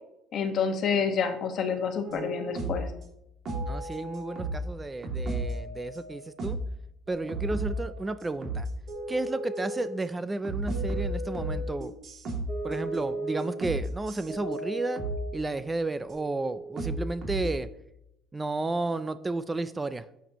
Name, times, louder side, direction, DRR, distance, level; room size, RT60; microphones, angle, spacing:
voice 1, 0.3-2.9, left 6 dB, 45° left, 6 dB, 1.3 m, -28 dB
sound 1, 2.0-2.9 3.5-4.7 5.0-6.7 7.1-8.1 8.4-10.0 10.4-15.4 16.1-17.6, right 1 dB, 40° right, 2.4 m, -34 dB
voice 2, 3.7-6.6 7.1-8.7 9.1-11.9 12.6-15.0 15.3-17.7 18.3-20.1, right 2 dB, 15° right, 13 dB, 0.3 m, -32 dB
11.0 x 7.2 x 3.0 m, 0.82 s
cardioid pair, 135°, 0 cm